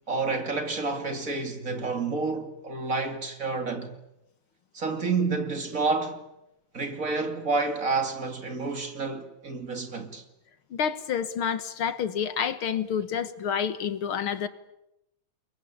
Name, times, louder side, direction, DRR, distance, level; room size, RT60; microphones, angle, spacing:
voice 1, 0.1-3.9 4.7-6.3 6.7-10.2, right 3 dB, 40° right, 3.0 m, -29 dB
voice 2, 10.7-14.5, left 7 dB, 80° left, 2.4 m, -29 dB
29.5 x 22.5 x 8.5 m
omnidirectional pair, 2.3 m